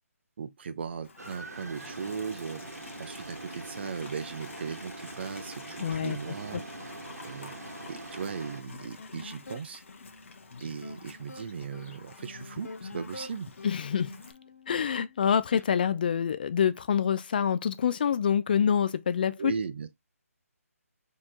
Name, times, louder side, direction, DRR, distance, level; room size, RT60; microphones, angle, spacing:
voice 1, 0.4-2.6 3.0-6.6 7.2-7.5 7.9-9.8 10.6-13.5 19.4-19.9, right 6 dB, 45° right, 0.6 m, -37 dB
Livestock farm animals working animals, 1.0-14.3, left 4 dB, 50° left, 1.0 m, -50 dB
sound 1, 1.2-8.6, right 2 dB, 85° right, 1.2 m, -43 dB
voice 2, 5.8-6.2 13.6-14.1 14.7-19.5, left 8 dB, 35° left, 0.4 m, -26 dB
sound 2, 8.7-15.7, left 2 dB, 75° left, 1.4 m, -46 dB
4.3 x 3.1 x 3.7 m
figure-of-eight pair, 160°, 8 cm